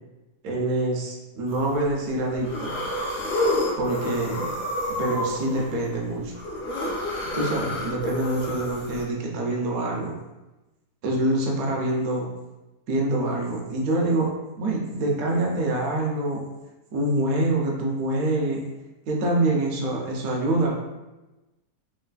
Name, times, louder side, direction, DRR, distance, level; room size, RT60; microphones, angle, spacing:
voice 1, 0.4-2.8 3.8-4.5 5.0-6.3 7.3-10.1 11.0-12.3 12.9-16.4 16.9-18.6 19.1-20.7, right 2 dB, 65° right, -2 dB, 1.0 m, -25 dB
sound 1, 1.5-1.9 2.3-9.0, left 1 dB, 55° left, 1.0 m, -29 dB
3.2 x 3.0 x 2.3 m, 1.1 s
omnidirectional pair, 1.7 m